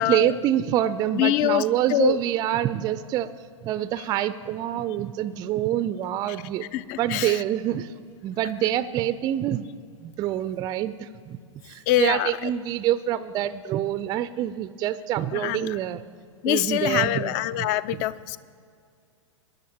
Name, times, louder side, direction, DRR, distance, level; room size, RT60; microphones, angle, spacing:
voice 1, 0.0-3.3 3.6-6.7 7.0-7.9 8.2-9.7 10.0-11.4 11.6-16.0 16.5-17.7 17.9-18.0, right 12 dB, 25° right, 14 dB, 0.4 m, -26 dB
voice 2, 1.1-1.6 1.9-2.2 6.7-7.3 11.9-12.3 15.3-15.7 16.4-18.4, left 14 dB, 40° left, 18 dB, 0.5 m, -24 dB
22.0 x 10.5 x 2.9 m, 2.2 s
figure-of-eight pair, 105°, 16 cm